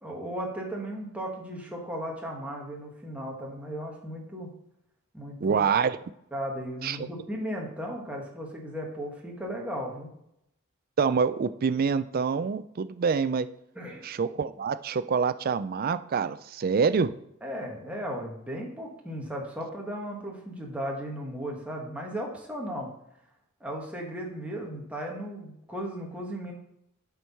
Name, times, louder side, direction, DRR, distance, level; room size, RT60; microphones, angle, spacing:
voice 1, 0.0-4.5 5.1-5.6 6.3-10.1 13.7-14.0 17.4-22.9 23.6-26.5, equal, 5° right, -1 dB, 1.6 m, -36 dB
voice 2, 5.4-6.0 6.8-7.1 11.0-13.5 14.0-17.1, right 5 dB, 45° right, 13 dB, 0.4 m, -26 dB
7.9 x 4.6 x 5.5 m, 0.80 s
head